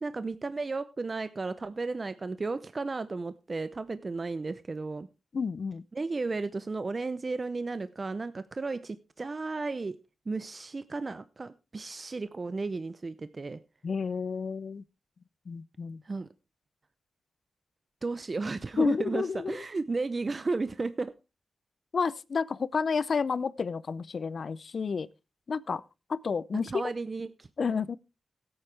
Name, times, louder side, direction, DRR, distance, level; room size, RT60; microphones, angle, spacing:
voice 1, 0.0-5.1 5.9-10.0 10.3-13.6 16.0-16.3 18.0-21.1 26.7-27.5, right 3 dB, 40° right, 0.6 m, -34 dB
voice 2, 5.3-5.8 13.8-14.8 15.5-16.0 18.8-19.6 21.9-25.1 25.5-25.8 26.1-26.8 27.6-28.0, left 5 dB, 60° left, 0.5 m, -30 dB
16.5 x 8.7 x 3.4 m
cardioid pair, 75°, 0 cm